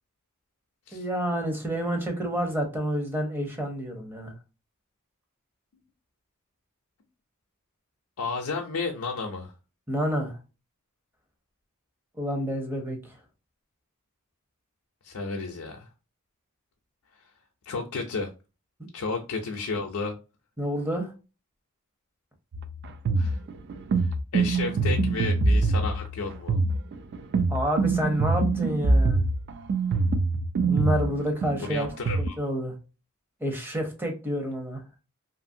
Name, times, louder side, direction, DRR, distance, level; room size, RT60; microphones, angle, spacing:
voice 1, 0.9-4.3 9.9-10.4 12.2-13.1 20.6-21.1 27.5-29.2 30.7-31.9 32.2-32.7 33.4-34.8, equal, 10° right, 0.7 m, -29 dB
voice 2, 8.2-9.5 15.0-15.9 17.7-18.3 18.9-20.1 23.2-23.4 24.0-26.6 31.6-32.4, left 4 dB, 80° left, 0.5 m, -32 dB
sound 1, 22.5-32.3, right 3 dB, 50° right, 0.3 m, -24 dB
2.8 x 2.5 x 2.6 m
head